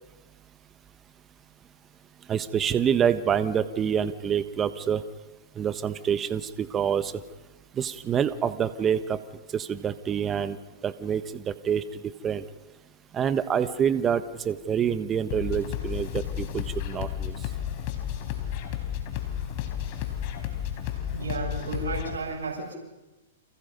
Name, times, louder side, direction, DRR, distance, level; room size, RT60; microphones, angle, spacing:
voice 1, 2.3-5.0 5.6-7.1 7.8-9.2 9.5-10.6 10.8-11.8 12.2-12.4 13.1-17.3, right 8 dB, 25° right, 13 dB, 1.3 m, -26 dB
sound 1, 15.3-22.2, left 10 dB, 50° left, 4.3 m, -32 dB
voice 2, 21.1-22.7, right 3 dB, 80° right, -3 dB, 7.2 m, -33 dB
30.0 x 27.0 x 5.4 m, 1.1 s
hypercardioid pair, 120°, 0 cm